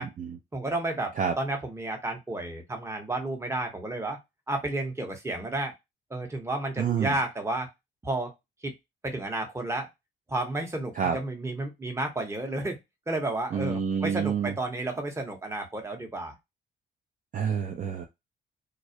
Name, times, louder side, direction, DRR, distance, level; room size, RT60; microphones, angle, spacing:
voice 1, 0.0-0.4 1.2-1.3 6.8-7.2 10.9-11.2 13.5-14.5 17.3-18.1, right 7 dB, 40° right, 4 dB, 0.4 m, -28 dB
voice 2, 0.5-4.2 4.5-5.7 6.1-7.7 8.0-8.3 8.6-8.7 9.0-9.9 10.3-12.8 13.1-16.3, right 2 dB, 15° right, 4 dB, 0.8 m, -32 dB
2.3 x 2.0 x 2.6 m, 0.20 s
cardioid pair, 90°, 20 cm